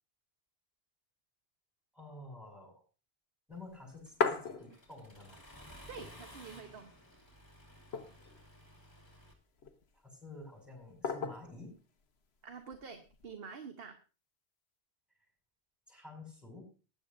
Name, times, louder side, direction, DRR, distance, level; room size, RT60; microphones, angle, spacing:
voice 1, 1.9-2.8 3.5-5.4 10.0-11.8 15.9-16.7, left 2 dB, ahead, 0 dB, 5.9 m, -50 dB
Plate and Mug on Table, 3.7-5.2 5.6-5.7 5.8-6.6 7.1-7.2 7.7-8.5 9.2-9.8 11.0-11.6 12.7-13.3, left 5 dB, 85° left, 1.3 m, -36 dB
Accelerating revving vroom, 4.1-9.3, left 1 dB, 25° left, 2.5 m, -55 dB
voice 2, 5.9-6.9 12.4-14.0, right 6 dB, 70° right, 6 dB, 1.3 m, -47 dB
19.0 x 10.5 x 2.6 m, 0.34 s
omnidirectional pair, 1.0 m